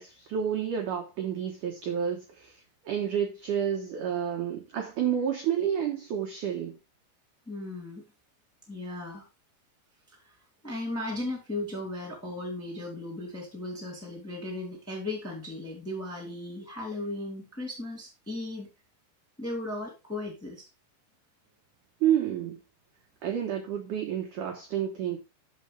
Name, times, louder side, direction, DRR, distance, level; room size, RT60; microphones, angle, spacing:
voice 1, 0.0-6.8 22.0-22.6 23.2-25.2, right 9 dB, 75° right, 1.9 m, -30 dB
voice 2, 7.4-8.0 8.7-9.2 10.1-10.3 10.6-18.7 19.4-20.6, left 2 dB, 5° left, 1.7 m, -36 dB
13.0 x 4.4 x 3.4 m
omnidirectional pair, 5.1 m